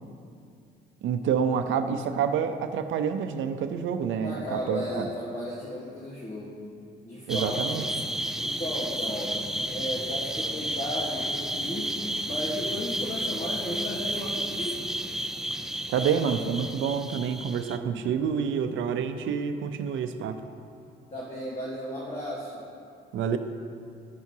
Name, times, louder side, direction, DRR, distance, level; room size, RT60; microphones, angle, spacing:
voice 1, 1.0-5.1 7.3-7.8 15.9-20.4 23.1-23.4, right 7 dB, 75° right, 8 dB, 0.6 m, -28 dB
voice 2, 4.2-6.6 7.0-7.8 8.4-11.9 12.2-14.9 21.1-22.6, equal, 30° left, -4 dB, 1.4 m, -34 dB
sound 1, 7.3-17.8, right 1 dB, 5° right, 0.3 m, -32 dB
13.5 x 5.9 x 2.8 m, 2.4 s
cardioid pair, 90°, 20 cm